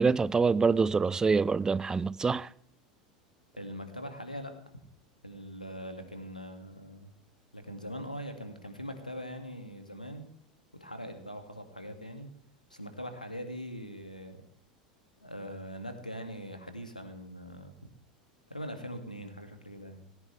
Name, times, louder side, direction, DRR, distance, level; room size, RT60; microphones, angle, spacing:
voice 1, 0.0-2.5, right 4 dB, 15° right, 0.5 m, -25 dB
voice 2, 3.6-4.6 5.2-7.1 7.5-10.2 10.8-12.3 12.7-14.4 15.2-17.7 18.5-20.0, equal, 90° left, 2.2 m, -42 dB
18.5 x 17.0 x 3.4 m
figure-of-eight pair, 80°, 4 cm